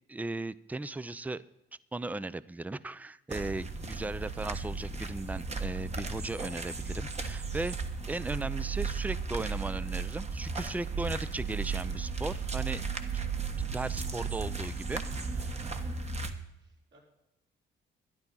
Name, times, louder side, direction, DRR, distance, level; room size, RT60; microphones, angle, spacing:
voice 1, 0.1-1.4 1.9-7.8 8.1-12.8 13.1-13.2 13.6-15.8, right 2 dB, 10° right, 18 dB, 0.4 m, -37 dB
sound 1, 3.3-16.3, right 5 dB, 35° right, 1.3 m, -35 dB
voice 2, 16.6-17.0, right 1 dB, 65° right, -3 dB, 5.2 m, -65 dB
12.5 x 10.5 x 5.5 m, 0.90 s
cardioid pair, 90°, 20 cm